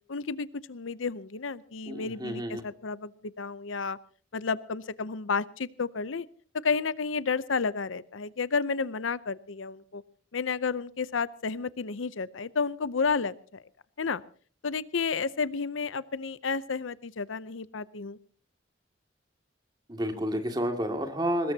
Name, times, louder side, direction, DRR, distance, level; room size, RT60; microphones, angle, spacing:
voice 1, 0.1-4.0 4.3-6.3 6.6-10.0 10.3-13.6 14.0-14.2 14.6-18.2, left 5 dB, 85° left, 17 dB, 0.7 m, -31 dB
voice 2, 1.9-2.6 19.9-21.5, equal, 20° right, 5 dB, 2.3 m, -30 dB
22.0 x 20.0 x 2.8 m, 0.41 s
head